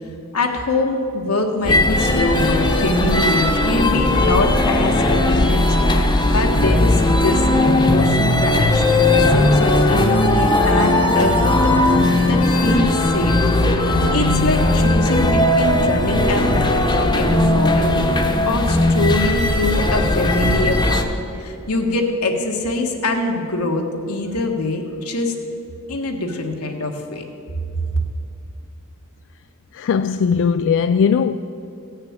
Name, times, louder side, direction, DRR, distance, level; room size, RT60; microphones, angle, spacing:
voice 1, 0.3-13.4 14.1-21.1 21.4-25.3 25.9-27.2, left 2 dB, 85° left, 1.5 m, -23 dB
sound 1, 1.6-21.0, left 1 dB, 20° left, 0.9 m, -17 dB
voice 2, 29.7-31.3, left 6 dB, 55° left, 0.3 m, -18 dB
16.0 x 6.6 x 8.8 m
head